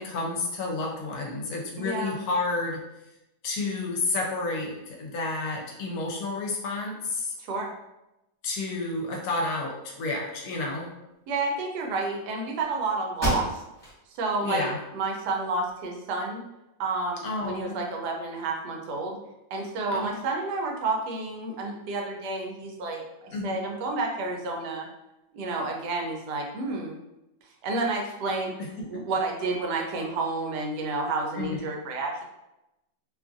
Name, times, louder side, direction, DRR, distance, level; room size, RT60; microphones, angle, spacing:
voice 1, 0.0-2.8 3.4-7.3 8.4-10.9 14.4-14.8 17.2-17.8 19.9-20.1 23.3-23.6 31.4-31.7, left 3 dB, 70° left, 0 dB, 1.0 m, -30 dB
voice 2, 1.8-2.2 7.4-7.7 11.3-13.6 14.2-16.4 16.8-19.2 19.5-24.9 25.3-27.0 27.6-28.5 28.8-32.3, right 3 dB, 85° right, 1 dB, 1.2 m, -30 dB
sound 1, 12.6-12.7 13.1-14.0 14.5-14.6 15.1-16.0, right 1 dB, 20° left, 0.8 m, -32 dB
2.8 x 2.4 x 2.5 m, 0.93 s
omnidirectional pair, 1.7 m